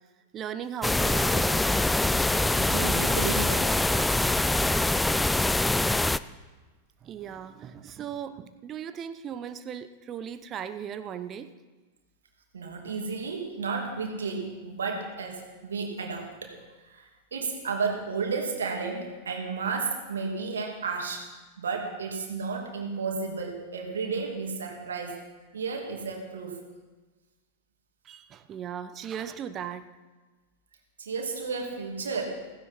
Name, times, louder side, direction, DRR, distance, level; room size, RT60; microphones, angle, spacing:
voice 1, 0.3-1.6 7.0-11.5 28.0-29.8, right 8 dB, 30° right, 11 dB, 0.8 m, -37 dB
sound 1, 0.8-6.2, left 2 dB, 5° left, 0.4 m, -24 dB
voice 2, 2.6-3.8 12.5-16.6 16.9-21.3 21.6-25.2 25.5-26.6 31.0-32.4, right 4 dB, 70° right, 2 dB, 2.5 m, -32 dB
16.0 x 15.5 x 4.3 m, 1.2 s
figure-of-eight pair, 90°, 0 cm